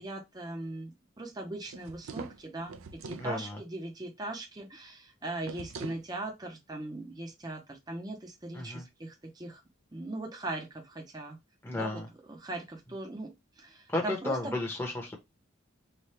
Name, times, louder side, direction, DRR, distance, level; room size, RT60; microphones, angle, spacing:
voice 1, 0.0-9.6 9.9-11.4 11.7-14.6, right 2 dB, 20° right, 0.6 m, -40 dB
sound 1, 1.7-3.3 5.4-6.1, right 4 dB, 75° right, 0.5 m, -43 dB
voice 2, 3.2-3.6 8.5-8.8 11.6-12.1 13.9-15.2, left 2 dB, 10° left, 0.8 m, -33 dB
3.2 x 2.3 x 4.2 m
head